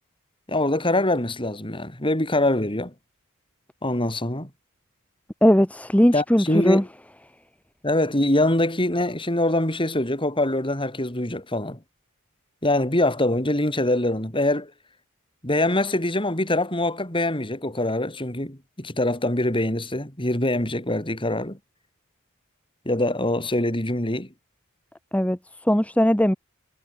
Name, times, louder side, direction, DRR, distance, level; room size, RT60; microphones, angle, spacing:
voice 1, 0.5-2.9 3.8-4.5 6.1-6.9 7.8-11.8 12.6-14.7 15.4-21.6 22.8-24.3, left 1 dB, 25° left, 4.9 m, -24 dB
voice 2, 5.4-6.8 25.1-25.4 25.7-26.4, equal, 5° left, 1.6 m, -19 dB
head